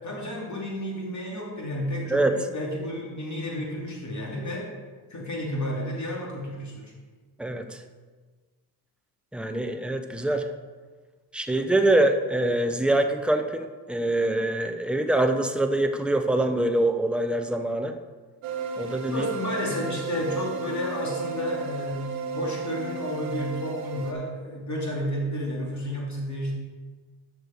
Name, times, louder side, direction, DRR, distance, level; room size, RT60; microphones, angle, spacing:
voice 1, 0.0-4.7 5.1-6.9 19.1-26.5, equal, 35° left, -1 dB, 2.8 m, -31 dB
voice 2, 7.4-7.8 9.3-10.5 11.3-18.0 18.8-19.3, right 1 dB, ahead, 6 dB, 0.8 m, -24 dB
sound 1, 18.4-24.1, right 4 dB, 80° right, 1.0 m, -33 dB
8.4 x 6.4 x 4.6 m, 1.4 s
hypercardioid pair, 55°, 47 cm